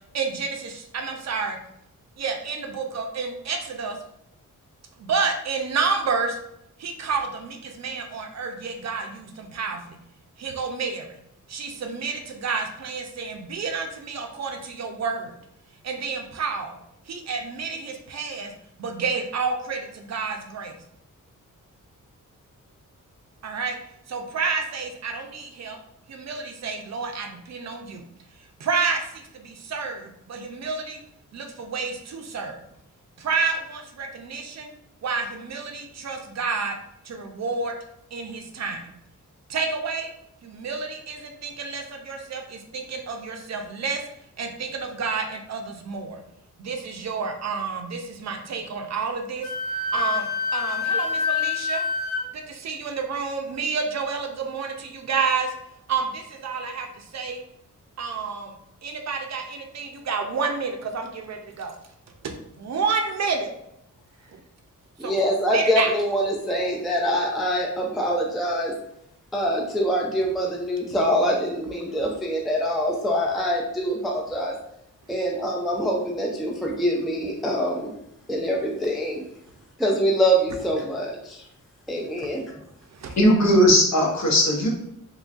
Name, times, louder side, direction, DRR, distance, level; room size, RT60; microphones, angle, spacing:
voice 1, 0.1-1.6 2.2-4.0 5.0-6.4 6.8-10.0 10.4-11.2 11.5-15.4 15.8-16.8 17.1-18.5 18.8-20.7 23.4-23.8 24.1-25.8 26.1-28.0 28.6-31.0 31.3-32.6 33.2-34.7 35.0-36.8 37.0-37.8 38.1-38.9 39.5-40.1 40.4-44.0 44.4-46.2 46.6-49.5 49.9-51.8 52.3-55.5 55.9-57.4 58.0-58.5 58.8-61.8 62.2-63.5 65.0-65.2 65.5-65.9 82.9-83.2, right 5 dB, 55° right, 3 dB, 0.5 m, -29 dB
Wind instrument woodwind instrument, 49.4-52.2, left 5 dB, 85° left, 1.4 m, -26 dB
voice 2, 65.0-68.7 69.3-74.6 75.1-77.9 78.3-79.2 79.8-81.4 81.9-82.5, equal, ahead, -2 dB, 0.3 m, -24 dB
voice 3, 83.2-84.7, equal, 55° left, -1 dB, 0.9 m, -18 dB
3.7 x 3.1 x 2.5 m, 0.78 s
wide cardioid pair, 175°, 32 cm